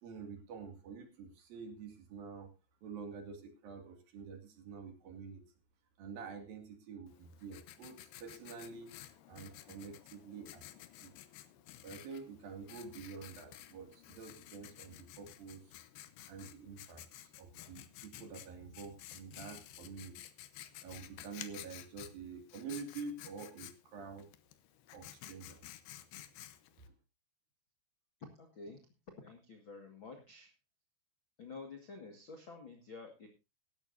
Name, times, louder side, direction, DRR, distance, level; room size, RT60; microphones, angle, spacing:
voice 1, 0.0-2.5 2.8-5.4 6.0-9.0 9.3-11.1 11.8-15.8 16.3-20.2 20.8-24.3 24.9-25.7, right 5 dB, 60° right, 5 dB, 3.8 m, -48 dB
Writing, 7.1-26.9, left 13 dB, 75° left, 2.7 m, -53 dB
voice 2, 28.4-28.8 29.2-30.5 31.4-33.3, left 4 dB, 50° left, 4 dB, 1.5 m, -50 dB
18.0 x 13.0 x 2.7 m, 0.27 s
omnidirectional pair, 5.1 m